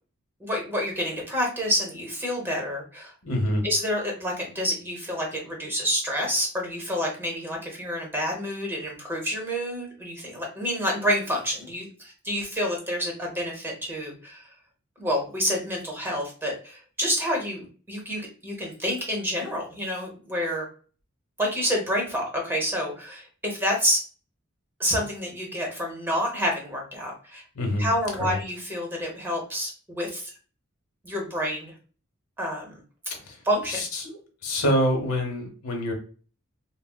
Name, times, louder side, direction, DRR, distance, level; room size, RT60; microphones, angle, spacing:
voice 1, 0.4-3.1 3.6-14.5 15.0-20.6 21.4-24.0 24.8-27.4 27.8-30.3 31.0-31.7 32.4-32.8 33.4-33.8, equal, 10° right, 0 dB, 0.8 m, -28 dB
voice 2, 3.2-3.7 27.5-27.9 28.2-28.4 33.2-33.4 33.7-34.2 34.4-35.9, equal, 80° left, 2 dB, 0.9 m, -26 dB
4.0 x 2.0 x 2.2 m, 0.40 s
head